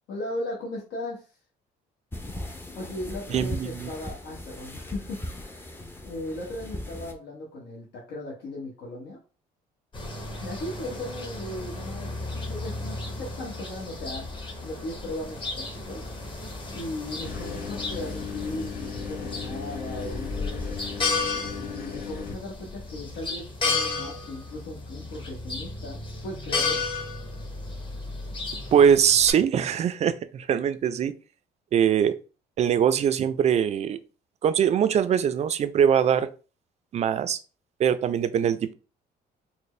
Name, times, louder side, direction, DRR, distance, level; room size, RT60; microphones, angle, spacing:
voice 1, 0.1-1.2 2.7-5.7 6.0-9.2 10.4-12.1 12.5-14.3 14.6-16.0 16.7-20.8 21.4-26.8, left 1 dB, 80° left, -3 dB, 1.1 m, -37 dB
sound 1, 2.1-7.1, left 1 dB, 15° left, 0.5 m, -38 dB
voice 2, 3.3-3.9 28.7-31.1 31.7-32.1 32.6-34.0 34.4-36.3 36.9-37.4 37.8-38.7, right 8 dB, 40° right, 12 dB, 0.4 m, -22 dB
sound 2, 9.9-29.3, left 3 dB, 30° left, 1.0 m, -33 dB
sound 3, 17.2-22.3, left 6 dB, 60° left, 0.8 m, -37 dB
4.2 x 2.1 x 3.1 m, 0.34 s
cardioid pair, 110°, 17 cm